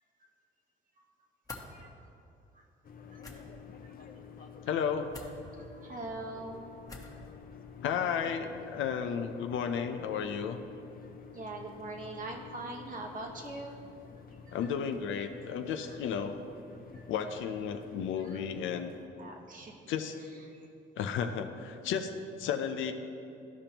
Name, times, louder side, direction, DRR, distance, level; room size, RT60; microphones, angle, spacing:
sound 1, 1.4-1.7 3.2-3.4 5.1-5.3 6.9-7.2, left 2 dB, 15° left, 1.2 m, -45 dB
voice 1, 1.7-2.1 2.5-2.6 3.1-3.4 3.8-3.9 5.5-6.7 11.3-13.8 14.5-14.6 15.9-16.0 16.9-17.0 18.2-18.4 19.2-19.8 20.5-20.6, right 2 dB, 40° right, 0 dB, 1.0 m, -43 dB
sound 2, 2.8-19.1, left 6 dB, 45° left, 0.7 m, -51 dB
voice 2, 4.7-5.1 7.8-10.6 14.5-16.4 17.1-18.9 19.9-20.2 21.0-22.1 22.4-22.9, left 7 dB, 85° left, 7 dB, 0.5 m, -33 dB
13.5 x 5.2 x 2.9 m, 2.7 s
cardioid pair, 90°, 20 cm